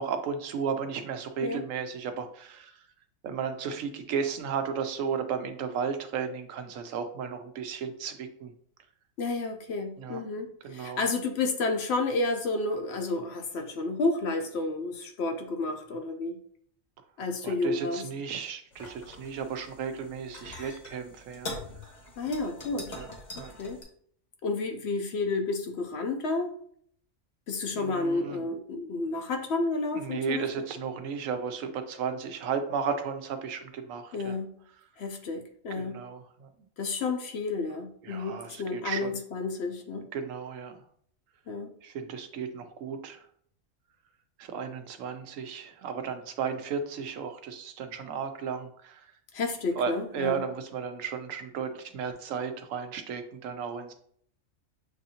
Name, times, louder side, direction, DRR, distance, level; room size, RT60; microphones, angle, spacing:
voice 1, 0.0-2.8 3.2-8.5 10.0-10.2 10.6-11.0 17.4-21.5 22.9-23.1 23.3-23.5 27.7-28.4 29.9-34.4 35.8-36.5 38.0-39.1 40.1-40.8 41.8-43.2 44.4-49.1 49.8-53.9, right 6 dB, 75° right, 7 dB, 1.0 m, -34 dB
voice 2, 9.2-16.4 17.2-18.0 22.2-23.0 23.6-23.8 24.4-26.5 27.5-30.5 34.1-34.5 35.0-36.0 36.8-40.1 41.5-41.7 49.3-50.4, left 3 dB, 60° left, 5 dB, 0.8 m, -31 dB
sound 1, 18.7-23.8, left 2 dB, 35° left, 0.9 m, -43 dB
7.1 x 2.6 x 2.8 m, 0.62 s
omnidirectional pair, 1.4 m